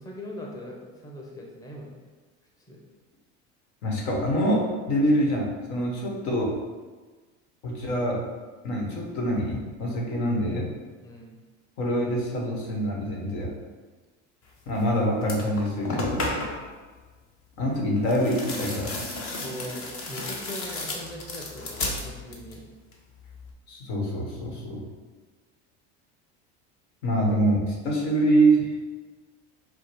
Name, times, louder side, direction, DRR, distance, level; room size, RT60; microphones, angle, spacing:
voice 1, 0.0-2.0 2.7-2.8 11.0-11.4 19.4-22.6, equal, 10° left, -2 dB, 0.7 m, -40 dB
voice 2, 3.8-6.5 7.6-8.2 8.6-10.7 11.8-13.5 14.7-16.2 17.6-19.0 23.7-24.8 27.0-28.7, right 1 dB, 80° left, -1 dB, 1.2 m, -25 dB
sound 1, 14.8-14.9 15.2-16.7 18.0-22.6 22.9-23.5, left 2 dB, 40° left, 0.9 m, -33 dB
4.7 x 2.1 x 4.4 m, 1.3 s
supercardioid pair, 110°, 33 cm